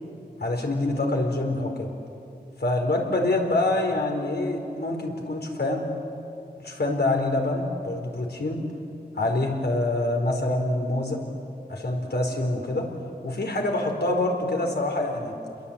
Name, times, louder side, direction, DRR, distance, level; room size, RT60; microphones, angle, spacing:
voice 1, 0.4-1.9 2.6-5.9 6.6-8.6 9.1-11.2 11.7-12.9 13.2-15.4, left 2 dB, 75° left, 2 dB, 4.2 m, -26 dB
30.0 x 22.0 x 8.7 m, 2.6 s
wide cardioid pair, 75°, 17 cm